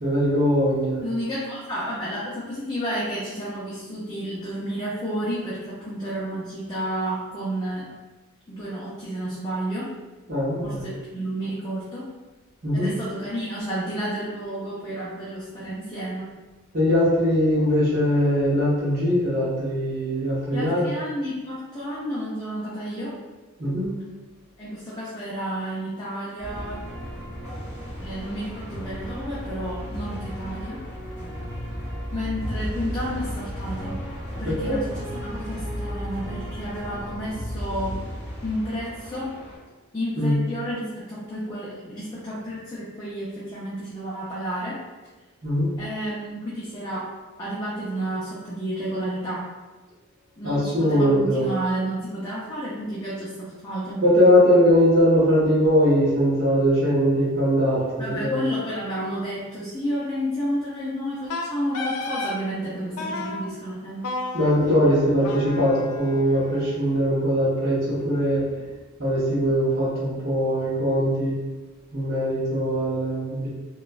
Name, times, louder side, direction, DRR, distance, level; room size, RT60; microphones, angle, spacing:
voice 1, 0.0-1.0 10.3-10.8 12.6-12.9 16.7-20.9 23.6-23.9 34.4-34.8 40.2-40.4 45.4-45.7 50.4-51.5 54.0-58.4 64.3-68.4 69.0-71.4 71.9-73.5, equal, 45° right, -9 dB, 0.7 m, -21 dB
voice 2, 1.0-7.9 8.5-9.9 10.6-12.1 12.7-16.3 20.5-23.2 24.6-26.8 28.0-30.8 32.1-34.0 34.4-38.1 38.4-39.3 39.9-44.8 45.8-47.1 47.4-49.5 50.4-54.0 58.0-64.1, equal, 15° left, -9 dB, 0.4 m, -31 dB
sound 1, 26.4-39.6, equal, 15° right, 0.9 m, -34 dB
Wind instrument woodwind instrument, 61.3-62.4 63.0-63.4 64.0-67.0, left 2 dB, 85° left, 0.4 m, -33 dB
2.9 x 2.2 x 2.3 m, 1.2 s
head